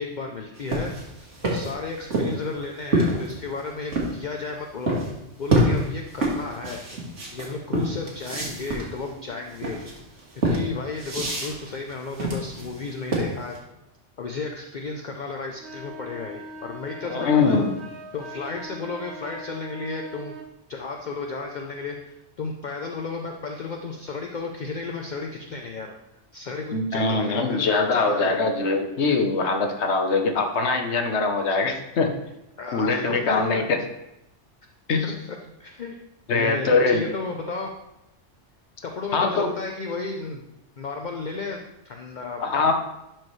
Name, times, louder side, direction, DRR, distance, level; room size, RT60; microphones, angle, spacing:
voice 1, 0.0-5.0 5.4-6.8 7.3-9.8 10.4-13.5 14.2-17.6 18.1-20.4 20.7-25.9 26.3-28.4 32.6-33.7 35.0-36.0 36.3-37.7 38.8-40.4 40.8-42.7, left 4 dB, 50° left, 2 dB, 0.7 m, -33 dB
sound 1, 0.6-4.2 4.9-5.1 5.5-13.6, right 1 dB, 85° right, 2.0 m, -26 dB
sound 2, 15.6-20.5, equal, 70° right, 1.1 m, -40 dB
voice 2, 17.1-17.7 26.7-32.1 32.7-33.8 34.9-35.1 36.3-37.0 39.1-39.5 42.4-42.7, left 4 dB, 70° left, 5 dB, 1.2 m, -22 dB
12.0 x 4.6 x 3.2 m, 0.89 s
omnidirectional pair, 1.2 m